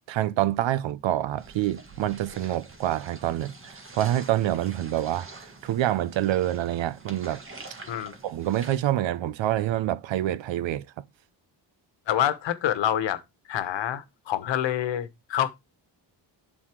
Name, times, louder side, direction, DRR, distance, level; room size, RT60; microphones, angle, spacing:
voice 1, 0.0-7.4 8.2-10.9, right 13 dB, 85° right, 0.8 m, -27 dB
sound 1, 1.4-8.8, right 2 dB, 30° right, 1.8 m, -46 dB
voice 2, 12.1-13.2 13.5-15.5, left 11 dB, 75° left, 1.3 m, -27 dB
11.0 x 4.3 x 4.5 m
wide cardioid pair, 150°, 44 cm